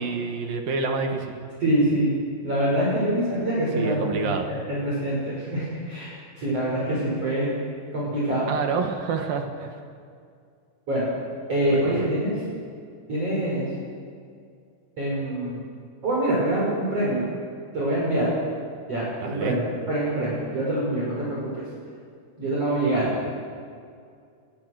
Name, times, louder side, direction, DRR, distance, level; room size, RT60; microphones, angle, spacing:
voice 1, 0.0-1.3 3.8-4.6 8.5-9.8 11.7-12.1 19.2-19.6, right 5 dB, 60° right, 4 dB, 2.9 m, -28 dB
voice 2, 1.6-2.1 2.4-7.5 7.9-8.5 10.9-11.1 11.5-12.4 13.1-13.7 15.0-15.5 16.0-17.2 17.7-18.3 18.9-21.6 22.4-23.1, right 1 dB, 30° right, -6 dB, 6.1 m, -25 dB
25.0 x 22.0 x 6.4 m, 2.3 s
omnidirectional pair, 5.5 m